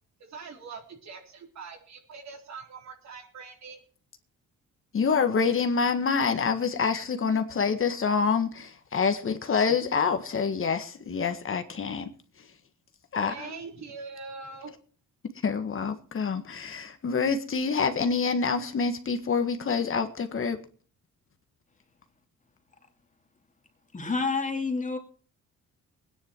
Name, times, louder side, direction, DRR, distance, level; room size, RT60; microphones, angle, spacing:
voice 1, 0.2-3.8 9.7-9.8 13.3-14.7, right 4 dB, 65° right, 2 dB, 4.0 m, -43 dB
voice 2, 4.9-12.1 13.1-13.5 15.3-20.6, left 5 dB, 45° left, 8 dB, 1.7 m, -27 dB
voice 3, 23.9-25.0, left 4 dB, 25° left, 4 dB, 2.9 m, -28 dB
20.5 x 10.0 x 4.6 m, 0.42 s
cardioid pair, 90°, 30 cm